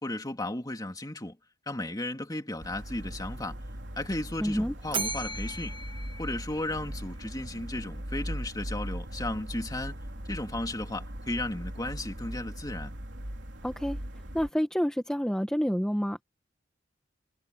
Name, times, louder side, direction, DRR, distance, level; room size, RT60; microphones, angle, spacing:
voice 1, 0.0-1.4 1.7-3.6 4.0-5.8 6.2-10.0 10.3-12.9, left 1 dB, 20° left, 2.8 m, -35 dB
sound 1, 2.6-14.5, equal, 65° right, 3.8 m, -39 dB
voice 2, 4.4-4.7 13.6-14.0 14.3-16.2, equal, 5° left, 1.4 m, -28 dB
Bell, 4.9-7.2, right 3 dB, 25° right, 2.0 m, -37 dB
head